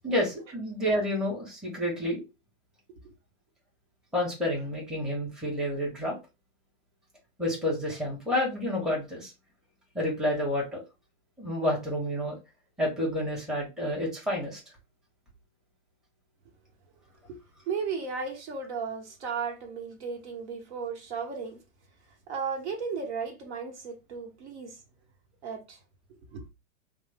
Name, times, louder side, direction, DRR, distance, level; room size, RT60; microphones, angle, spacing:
voice 1, 0.0-2.2 4.1-6.1 7.4-9.3 9.9-10.8 11.4-12.4 12.8-14.6, left 1 dB, ahead, 0.9 m, -29 dB
voice 2, 17.7-21.6 22.3-24.8 25.4-25.8 26.3-26.4, right 5 dB, 55° right, 1.1 m, -35 dB
3.1 x 2.0 x 3.4 m
hypercardioid pair, 130°, 40 cm